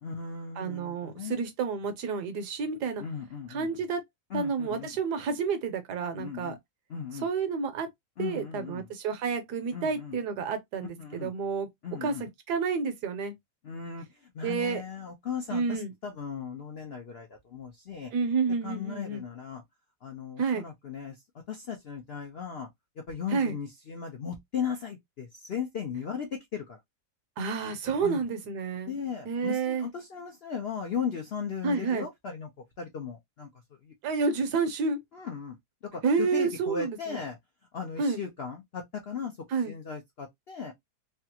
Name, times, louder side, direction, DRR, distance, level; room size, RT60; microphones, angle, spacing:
voice 1, 0.0-1.5 3.0-3.7 4.3-4.9 6.1-6.6 6.9-7.3 8.2-8.9 9.7-10.2 11.0-11.3 11.8-12.2 13.6-18.1 18.6-19.6 20.0-22.7 23.1-26.8 28.0-28.2 28.9-32.5 32.8-33.5 33.8-33.9 35.1-35.6 35.8-37.4 37.7-39.4 39.6-40.7, left 6 dB, 70° left, 0.6 m, -37 dB
voice 2, 0.6-3.0 3.5-4.0 4.3-6.6 7.2-7.9 8.2-11.7 12.0-13.3 14.4-14.8 15.5-15.9 18.1-19.2 20.4-20.6 23.3-23.5 27.4-28.9 29.3-29.9 31.6-32.0 34.0-35.0 36.0-37.2 38.0-38.2 39.5-39.7, right 5 dB, 70° right, 1.3 m, -30 dB
3.4 x 2.4 x 2.8 m
omnidirectional pair, 1.9 m